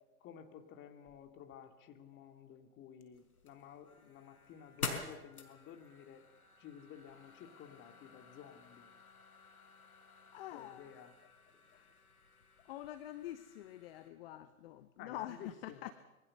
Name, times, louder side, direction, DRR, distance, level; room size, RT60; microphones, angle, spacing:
voice 1, 0.2-6.2 6.6-8.9 10.5-11.1 15.0-15.9, left 8 dB, 25° left, 6 dB, 2.7 m, -53 dB
sound 1, 3.1-14.1, left 4 dB, 80° left, 4.9 m, -49 dB
voice 2, 10.3-10.9 11.7-11.9 12.7-15.9, left 13 dB, 40° left, 13 dB, 1.1 m, -46 dB
25.5 x 23.0 x 6.7 m, 1.1 s
figure-of-eight pair, 120°, 44 cm